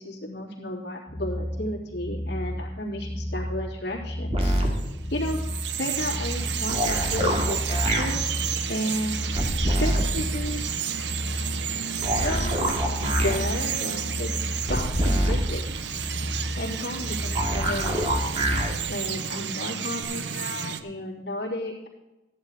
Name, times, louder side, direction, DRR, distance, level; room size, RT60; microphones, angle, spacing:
voice 1, 0.0-4.5 5.1-8.3 8.7-9.3 9.6-10.8 11.9-12.7 13.0-15.6 16.6-18.1 18.9-21.9, left 1 dB, 70° left, -2 dB, 3.3 m, -33 dB
sound 1, 1.1-17.7, equal, 30° left, 2.3 m, -33 dB
sound 2, 4.3-4.7 6.7-8.0 9.4-10.0 12.0-13.4 14.7-15.4 17.4-18.7 20.0-20.1, equal, 35° right, 2.3 m, -25 dB
Bird vocalization bird call bird song, 4.7-20.8, right 8 dB, 75° right, 0.8 m, -32 dB
14.5 x 10.5 x 4.1 m, 1.0 s
head